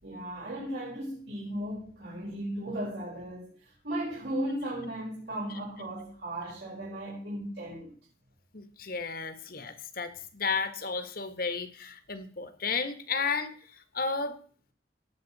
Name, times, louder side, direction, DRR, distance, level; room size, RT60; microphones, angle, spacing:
voice 1, 0.0-8.0, right 1 dB, 70° right, 5.2 m, -36 dB
voice 2, 8.5-13.6 13.9-14.4, left 5 dB, 55° left, 1.8 m, -33 dB
18.5 x 7.9 x 4.3 m
head